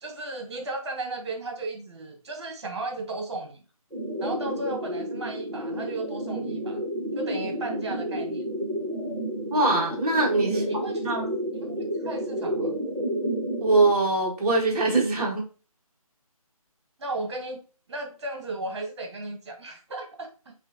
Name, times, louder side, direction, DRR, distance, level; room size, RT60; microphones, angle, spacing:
voice 1, 0.0-3.6 4.2-6.8 7.1-8.4 10.5-11.3 11.5-12.8 17.0-17.6 17.9-20.5, right 2 dB, 45° right, 3 dB, 1.0 m, -35 dB
sound 1, 3.9-13.9, equal, 10° left, 2.3 m, -30 dB
voice 2, 9.5-10.6 11.0-11.3 13.6-15.5, right 2 dB, 20° right, -6 dB, 0.8 m, -22 dB
6.0 x 2.6 x 2.6 m, 0.35 s
figure-of-eight pair, 160°, 19 cm